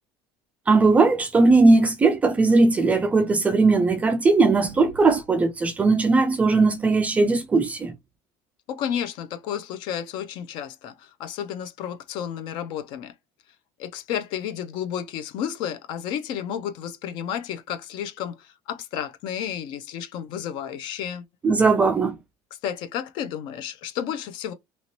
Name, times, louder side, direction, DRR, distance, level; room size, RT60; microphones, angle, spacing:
voice 1, 0.7-7.9 21.4-22.2, right 3 dB, 15° right, 0.3 m, -19 dB
voice 2, 8.7-13.1 13.8-21.2 22.6-24.5, left 9 dB, 50° left, 0.5 m, -32 dB
2.9 x 2.8 x 2.9 m
cardioid pair, 170°, 10 cm